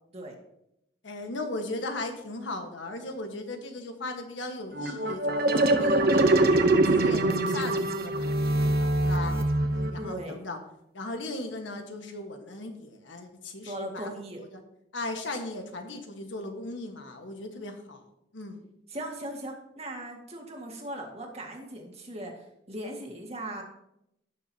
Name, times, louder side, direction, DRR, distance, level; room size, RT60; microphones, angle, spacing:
voice 1, 1.0-9.3 9.7-10.6 10.9-14.1 14.4-14.6 14.9-18.0 18.3-18.6, left 2 dB, 90° left, 5 dB, 1.5 m, -37 dB
sound 1, 4.7-10.1, right 2 dB, 55° right, 0.9 m, -23 dB
voice 2, 10.0-10.4 13.7-14.4 18.9-22.3 22.7-23.6, right 1 dB, 35° right, 1 dB, 1.9 m, -38 dB
18.0 x 6.5 x 2.9 m, 0.81 s
head